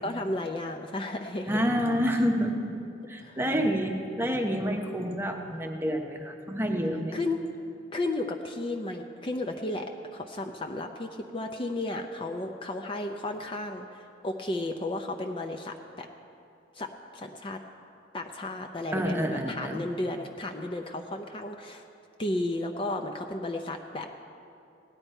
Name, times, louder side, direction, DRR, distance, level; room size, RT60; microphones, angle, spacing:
voice 1, 0.0-1.6 3.2-3.4 7.1-7.5 7.9-9.9 10.1-16.1 16.7-17.6 18.1-21.8 22.2-24.1, left 2 dB, 25° left, 4 dB, 0.5 m, -33 dB
voice 2, 1.5-7.2 18.9-19.8, equal, 10° right, 3 dB, 0.9 m, -28 dB
17.0 x 10.5 x 4.5 m, 2.6 s
head